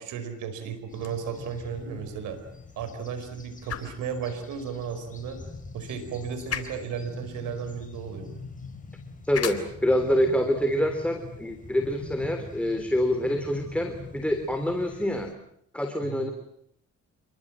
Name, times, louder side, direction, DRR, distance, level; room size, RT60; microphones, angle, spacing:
voice 1, 0.0-2.4 2.8-5.4 5.7-8.3 16.0-16.3, right 7 dB, 90° right, 9 dB, 5.1 m, -34 dB
sound 1, 0.9-12.9, left 7 dB, 50° left, 3.8 m, -43 dB
sound 2, 0.9-15.3, left 3 dB, 25° left, 5.3 m, -44 dB
voice 2, 9.2-15.3 15.7-16.3, equal, 5° left, 5 dB, 3.4 m, -26 dB
28.5 x 23.0 x 7.6 m, 0.71 s
cardioid pair, 90°, 30 cm